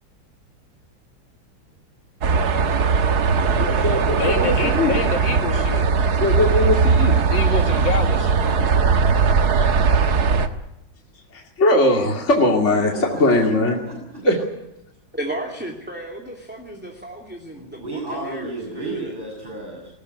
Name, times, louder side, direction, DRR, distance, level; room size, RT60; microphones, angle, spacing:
sound 1, 2.2-10.5, right 5 dB, 55° right, 1.8 m, -19 dB
voice 1, 3.6-4.9 6.2-7.2 9.6-9.8 11.3-12.9 13.2-13.8 14.2-14.4, left 1 dB, 35° left, 1 dB, 2.9 m, -20 dB
voice 2, 4.2-5.9 7.3-8.3, left 4 dB, 75° left, 5 dB, 3.0 m, -26 dB
voice 3, 12.9-13.3 13.8-14.3 17.5-19.9, right 2 dB, 25° right, -3 dB, 7.6 m, -33 dB
voice 4, 15.1-19.1, right 1 dB, 5° right, 0 dB, 2.7 m, -34 dB
20.0 x 19.5 x 9.7 m, 0.85 s
omnidirectional pair, 2.1 m